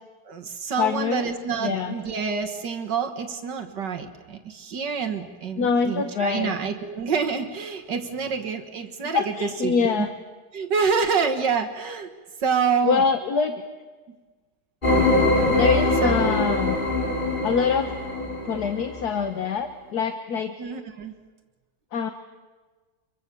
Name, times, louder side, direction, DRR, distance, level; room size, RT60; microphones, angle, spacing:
voice 1, 0.3-10.1 10.5-12.1 12.4-13.0 16.0-16.2 20.6-21.2, right 5 dB, 80° right, 6 dB, 2.2 m, -27 dB
voice 2, 0.8-1.2 1.6-2.0 5.6-6.5 9.1-10.1 12.8-13.6 15.5-16.8 17.4-17.9 18.4-20.5 21.9-22.1, left 6 dB, 65° left, 7 dB, 1.7 m, -24 dB
sound 1, 14.8-19.1, left 2 dB, 25° left, 4.5 m, -23 dB
28.0 x 24.0 x 7.0 m, 1.4 s
omnidirectional pair, 1.8 m